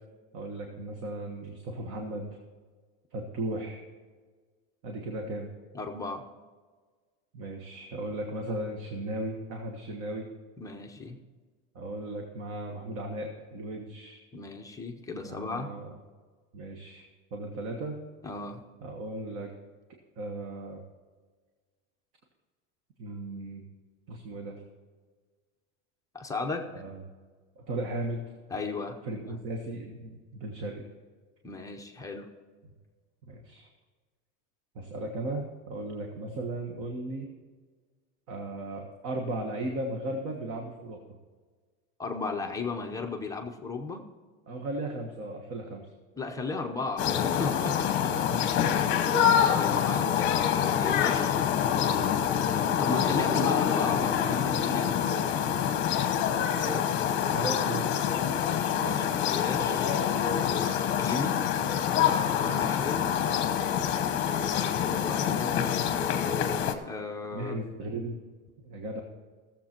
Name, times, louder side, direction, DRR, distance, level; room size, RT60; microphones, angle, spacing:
voice 1, 0.3-2.3 3.1-3.8 4.8-5.5 7.3-10.3 11.7-14.2 15.2-15.9 16.5-18.0 18.8-19.5 20.2-20.8 23.0-23.6 24.1-24.6 26.7-27.0 27.6-28.2 29.0-30.9 33.3-33.7 34.7-37.3 38.3-41.0 44.5-45.9 48.0-48.5 57.3-58.4 58.8-59.0 67.3-68.2 68.6-69.0, right 2 dB, 45° right, 2 dB, 1.4 m, -36 dB
voice 2, 5.7-6.2 10.6-11.2 14.3-15.7 18.2-18.6 26.1-26.7 28.5-29.0 31.4-32.3 42.0-44.0 46.2-48.1 48.8-49.1 49.5-51.4 52.8-55.4 58.7-59.8 60.5-61.4 62.4-63.2 64.4-65.7 66.8-67.7, left 3 dB, 10° left, 2 dB, 0.7 m, -35 dB
sound 1, 47.0-66.7, left 9 dB, 35° left, 1.0 m, -26 dB
16.0 x 7.4 x 4.4 m, 1.5 s
cardioid pair, 165°, 34 cm